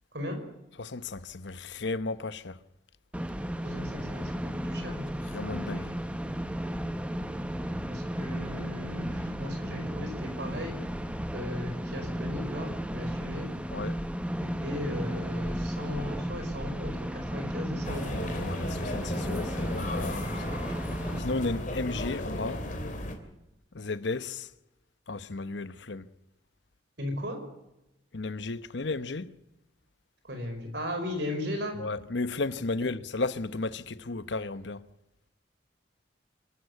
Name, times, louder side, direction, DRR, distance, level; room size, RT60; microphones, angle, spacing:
voice 1, 0.8-2.6 5.3-6.0 13.7-14.0 18.4-20.6 21.2-22.6 23.7-24.5 25.1-26.1 28.1-29.3 31.8-34.9, left 3 dB, 65° left, 0.9 m, -34 dB
sound 1, 3.1-21.2, equal, 5° right, 1.0 m, -34 dB
voice 2, 3.6-5.1 7.9-10.8 11.3-13.5 14.4-18.2 27.0-27.4 30.2-31.8, left 1 dB, 60° right, 5.0 m, -36 dB
sound 2, 17.8-23.1, left 1 dB, 40° left, 3.0 m, -35 dB
26.5 x 13.0 x 8.3 m
head